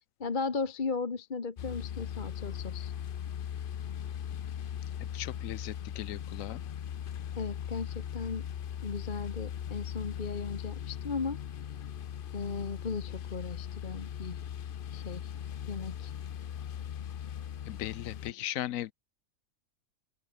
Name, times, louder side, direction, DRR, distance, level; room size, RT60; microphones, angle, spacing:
voice 1, 0.2-2.9 7.4-8.4 8.8-11.4 12.3-14.4 14.9-15.3 15.7-16.1, left 4 dB, 35° left, 1.3 m, -36 dB
sound 1, 1.6-18.3, left 9 dB, 55° left, 0.6 m, -39 dB
voice 2, 5.1-6.6 17.7-18.9, left 13 dB, 70° left, 1.0 m, -37 dB
open air
omnidirectional pair, 1.5 m